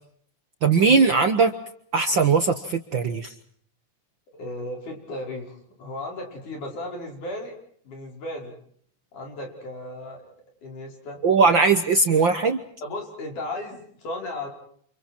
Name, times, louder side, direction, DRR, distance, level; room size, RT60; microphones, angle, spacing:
voice 1, 0.6-1.5 1.9-3.3 11.2-12.6, right 4 dB, 55° right, 8 dB, 1.4 m, -19 dB
voice 2, 4.4-7.6 7.9-8.6 9.1-10.2 10.6-11.2 12.8-14.5, left 1 dB, 80° left, 1 dB, 7.1 m, -35 dB
30.0 x 28.0 x 4.6 m, 0.63 s
omnidirectional pair, 3.5 m